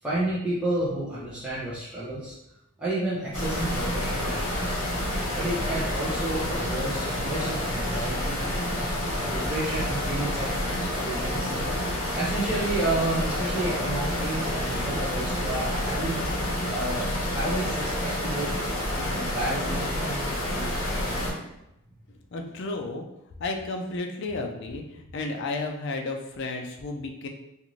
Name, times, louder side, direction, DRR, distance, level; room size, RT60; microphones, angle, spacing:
voice 1, 0.0-2.3 2.8-4.8 5.4-8.7 9.1-11.7 12.1-16.3 16.7-18.5 19.0-21.0, right 2 dB, 5° right, -11 dB, 0.5 m, -31 dB
sound 1, 3.3-21.3, left 1 dB, 75° left, 1.0 m, -29 dB
voice 2, 22.3-23.1 23.4-27.3, left 3 dB, 50° left, 3 dB, 0.4 m, -32 dB
2.5 x 2.5 x 3.0 m, 0.84 s
head